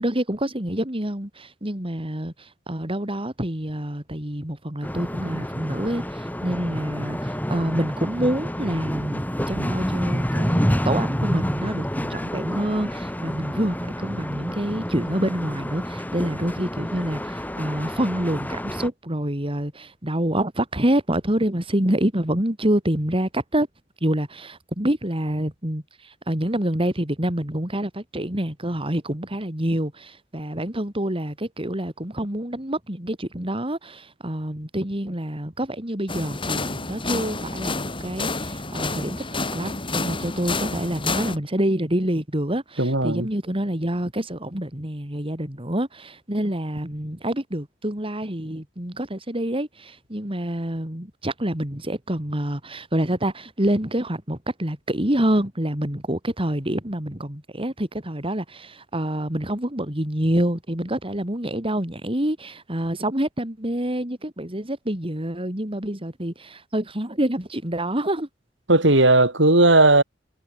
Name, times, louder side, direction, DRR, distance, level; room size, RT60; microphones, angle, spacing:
voice 1, 0.0-23.7 24.0-68.3, right 1 dB, 30° right, 4.0 m, -27 dB
sound 1, 4.8-18.9, equal, 10° left, 7.5 m, -28 dB
sound 2, 36.1-41.4, left 3 dB, 30° left, 5.9 m, -29 dB
voice 2, 42.8-43.3 68.7-70.0, right 2 dB, 75° right, 6.0 m, -16 dB
head